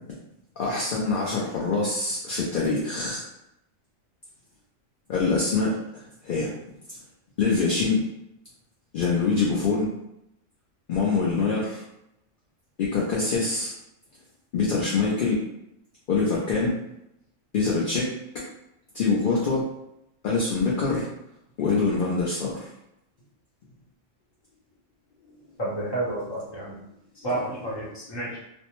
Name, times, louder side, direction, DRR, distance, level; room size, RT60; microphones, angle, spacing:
voice 1, 0.6-3.2 5.1-5.8 6.2-6.5 7.4-8.0 8.9-9.9 10.9-11.8 12.8-13.7 14.5-15.4 16.1-16.8 17.5-18.1 18.9-19.7 20.2-21.1 21.6-22.7, left 4 dB, 60° left, -4 dB, 0.5 m, -24 dB
voice 2, 25.6-26.8 27.2-28.4, right 1 dB, 25° left, -7 dB, 0.8 m, -30 dB
2.6 x 2.1 x 2.9 m, 0.83 s
omnidirectional pair, 1.3 m